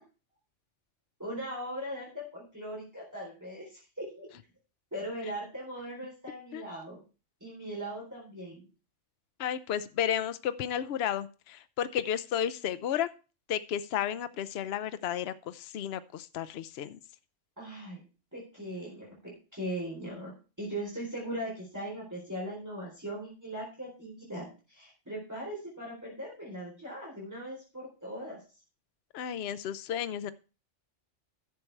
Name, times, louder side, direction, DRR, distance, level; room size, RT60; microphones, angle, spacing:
voice 1, 1.2-4.3 4.9-7.0 7.4-8.7 17.6-18.0 18.3-28.4, right 1 dB, 15° right, -4 dB, 3.8 m, -39 dB
voice 2, 9.4-13.1 13.5-17.0 29.1-30.3, left 9 dB, 65° left, 13 dB, 0.8 m, -32 dB
11.5 x 6.6 x 4.5 m, 0.33 s
omnidirectional pair, 1.3 m